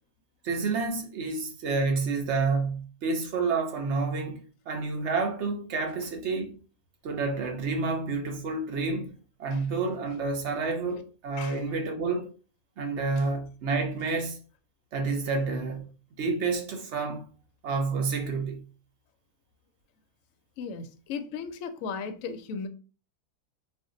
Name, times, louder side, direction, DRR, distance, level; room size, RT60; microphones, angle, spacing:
voice 1, 0.4-6.5 7.0-9.1 9.4-12.3 12.8-14.4 14.9-15.9 16.2-17.2 17.6-18.6, right 4 dB, 60° right, 0.8 m, -29 dB
voice 2, 20.6-22.7, left 5 dB, 70° left, 0.8 m, -36 dB
2.6 x 2.4 x 3.7 m
omnidirectional pair, 1.7 m